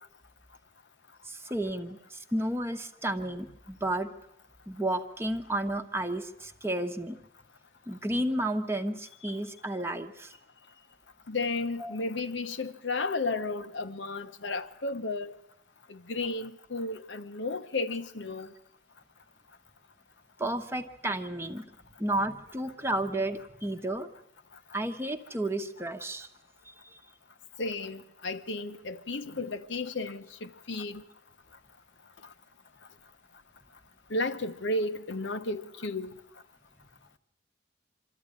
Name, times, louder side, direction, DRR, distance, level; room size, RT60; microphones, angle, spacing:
voice 1, 1.2-4.1 4.7-7.2 7.9-10.3 11.8-12.0 20.4-21.7 22.0-24.1 24.7-26.3 26.7-27.0, right 1 dB, 15° right, 1.0 m, -32 dB
voice 2, 11.3-15.4 15.9-18.5 27.6-31.0 34.1-36.1, left 2 dB, 75° left, 1.0 m, -33 dB
25.0 x 13.5 x 9.8 m
head